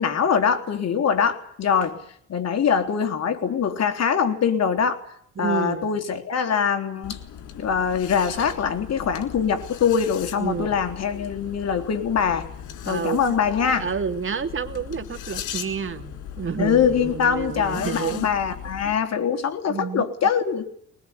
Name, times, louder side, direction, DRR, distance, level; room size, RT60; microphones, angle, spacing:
voice 1, 0.0-2.0 2.3-5.0 5.4-7.2 7.5-12.5 12.8-13.9 16.6-20.7, left 7 dB, 60° left, 7 dB, 3.5 m, -23 dB
voice 2, 5.4-5.9 10.4-10.7 12.8-13.2 13.8-18.3 18.8-18.9 19.7-20.0, right 6 dB, 45° right, 8 dB, 2.5 m, -29 dB
sound 1, 7.0-19.0, left 9 dB, 90° left, 3.5 m, -38 dB
22.0 x 20.0 x 9.7 m, 0.66 s
cardioid pair, 90°, 30 cm